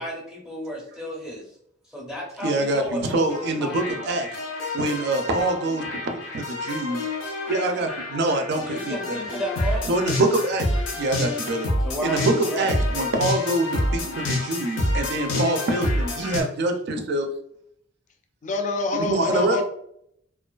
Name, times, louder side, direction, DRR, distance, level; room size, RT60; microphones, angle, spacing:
voice 1, 0.0-1.4 1.9-4.2 8.6-9.9 11.8-12.7, equal, 5° right, -4 dB, 0.6 m, -32 dB
voice 2, 2.4-4.3 4.7-7.1 7.5-9.4 9.9-10.7 10.9-11.7 12.0-17.3 18.9-19.6, right 2 dB, 60° right, 5 dB, 0.4 m, -25 dB
sound 1, 3.3-16.4, left 1 dB, 90° left, 0.6 m, -28 dB
voice 3, 18.4-19.6, left 3 dB, 40° left, 4 dB, 0.4 m, -25 dB
2.4 x 2.3 x 2.3 m, 0.71 s
head